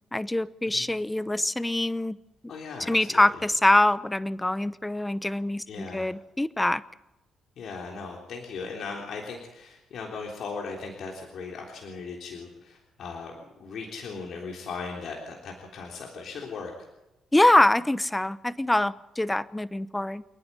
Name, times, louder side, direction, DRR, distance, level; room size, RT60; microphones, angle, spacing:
voice 1, 0.1-2.2 2.8-6.8 17.3-20.2, left 1 dB, 10° left, 16 dB, 0.8 m, -24 dB
voice 2, 2.5-3.2 5.7-6.1 7.6-16.7, left 4 dB, 65° left, 0 dB, 3.6 m, -38 dB
29.0 x 9.7 x 9.6 m, 0.98 s
cardioid pair, 90°, 0 cm